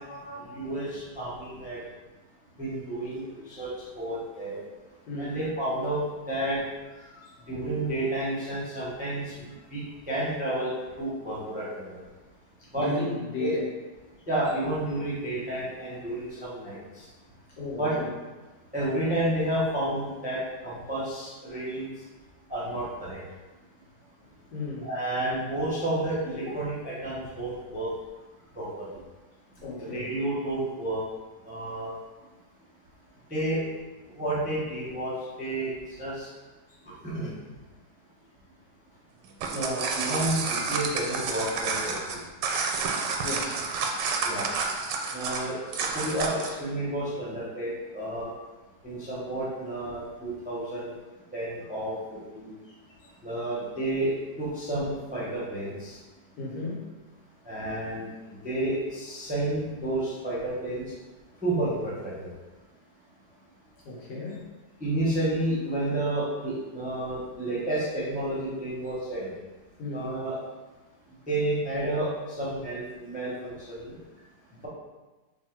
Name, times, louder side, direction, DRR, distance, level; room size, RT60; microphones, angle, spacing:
voice 1, 0.0-1.8 2.6-4.6 5.2-6.6 7.5-12.0 12.7-12.9 13.4-13.5 14.3-17.0 17.8-17.9 18.7-21.9 22.5-23.2 24.8-27.9 28.5-29.0 29.8-31.0 31.4-31.9 33.3-33.6 34.1-35.1 35.4-36.3 37.0-37.3 39.5-42.2 44.2-44.4 45.1-45.6 45.9-48.3 48.8-50.9 51.3-52.5 53.2-54.1 54.4-56.0 57.4-60.8 61.4-62.3 64.8-69.3 69.9-70.3 71.3-73.9, right 1 dB, 10° right, -8 dB, 0.5 m, -31 dB
voice 2, 5.1-5.4 7.0-7.4 12.7-13.6 17.6-18.1 24.2-24.9 29.6-30.1 43.2-43.6 56.4-56.9 63.8-64.4 69.8-70.2, left 3 dB, 80° left, -7 dB, 1.8 m, -35 dB
sound 1, 39.2-46.6, right 4 dB, 85° right, 1.2 m, -30 dB
3.4 x 2.5 x 4.4 m, 1.2 s
omnidirectional pair, 1.9 m